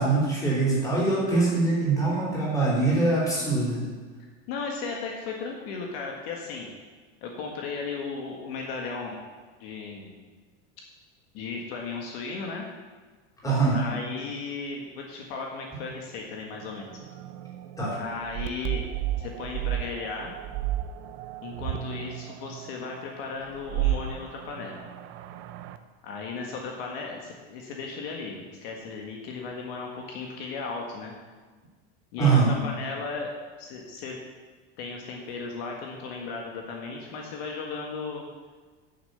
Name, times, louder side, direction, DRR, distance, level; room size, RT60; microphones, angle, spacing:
voice 1, 0.0-3.8 13.4-13.8 17.8-18.0 32.2-32.5, right 3 dB, 10° left, -7 dB, 3.6 m, -23 dB
voice 2, 4.2-6.7 7.2-9.2 9.6-10.2 11.3-12.7 13.7-16.9 18.0-18.9 19.2-20.3 21.4-24.8 26.0-31.1 32.1-33.3 33.6-34.2 34.8-38.3, left 4 dB, 60° left, 0 dB, 1.8 m, -36 dB
sound 1, 16.6-25.8, right 12 dB, 35° right, 0.5 m, -33 dB
10.5 x 6.8 x 6.9 m, 1.4 s
supercardioid pair, 170°, 34 cm